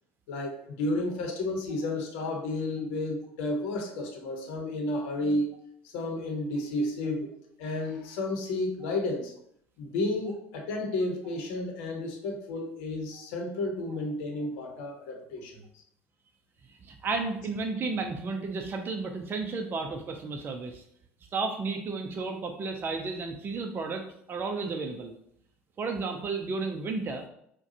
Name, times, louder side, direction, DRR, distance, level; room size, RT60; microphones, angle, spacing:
voice 1, 0.3-5.6 5.8-7.3 7.6-9.3 9.8-15.6, left 2 dB, 65° left, 2 dB, 0.8 m, -32 dB
voice 2, 16.7-20.8 21.3-24.0 24.3-25.1 25.8-27.2, right 3 dB, 30° right, 3 dB, 0.5 m, -33 dB
4.6 x 2.2 x 2.8 m, 0.69 s
hypercardioid pair, 70°, 7 cm